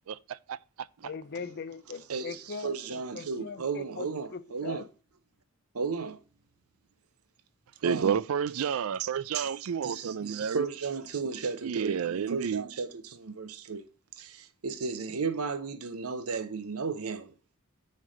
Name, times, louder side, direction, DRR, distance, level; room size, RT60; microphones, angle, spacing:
voice 1, 0.1-0.9 7.8-10.6 11.6-12.6, right 7 dB, 70° right, 0.4 m, -31 dB
voice 2, 1.0-4.1 4.3-4.9, left 5 dB, 50° left, 0.5 m, -40 dB
voice 3, 2.1-4.9 5.7-6.2 7.8-8.2 9.3-9.5 9.8-13.8 14.2-17.3, right 5 dB, 85° right, 0.7 m, -34 dB
9.5 x 3.3 x 6.3 m
head